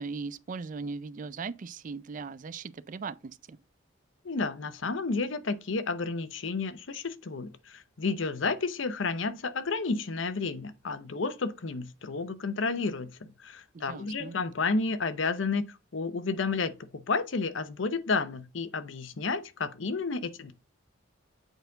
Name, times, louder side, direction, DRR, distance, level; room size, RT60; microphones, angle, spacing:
voice 1, 0.0-3.6 13.7-14.4, right 4 dB, 40° right, 0.4 m, -38 dB
voice 2, 4.2-20.5, left 4 dB, 70° left, 0.7 m, -31 dB
7.9 x 4.4 x 3.9 m
head